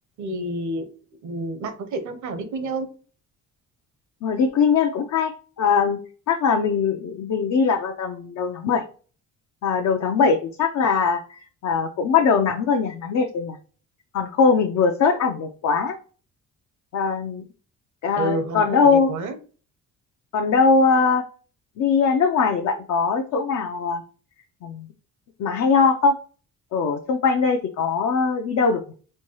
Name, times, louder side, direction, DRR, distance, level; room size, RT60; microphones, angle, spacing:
voice 1, 0.2-0.9 1.2-2.9 18.2-19.4, right 2 dB, 75° right, 9 dB, 0.9 m, -29 dB
voice 2, 4.2-5.3 5.6-6.0 6.3-8.8 9.6-13.6 14.1-16.0 16.9-17.4 18.0-19.1 20.3-21.2 21.8-24.0 24.6-24.9 25.4-26.2 26.7-28.8, left 5 dB, 65° left, 3 dB, 0.6 m, -21 dB
4.4 x 2.3 x 3.0 m, 0.38 s
cardioid pair, 90°, 30 cm